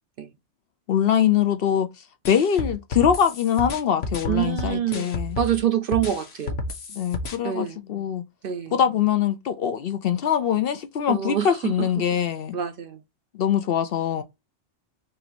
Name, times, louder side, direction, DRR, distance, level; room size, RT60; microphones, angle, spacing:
voice 1, 0.9-1.9 2.3-5.4 6.9-8.2 8.7-12.6 13.3-14.2, left 9 dB, 60° left, 0.7 m, -23 dB
sound 1, 2.2-5.6 5.9-7.3, left 2 dB, 90° left, 1.3 m, -31 dB
voice 2, 4.3-6.6 7.4-7.8 8.4-8.8 11.1-11.9 12.5-13.0, right 10 dB, 60° right, 0.6 m, -26 dB
3.8 x 2.9 x 4.1 m
omnidirectional pair, 1.2 m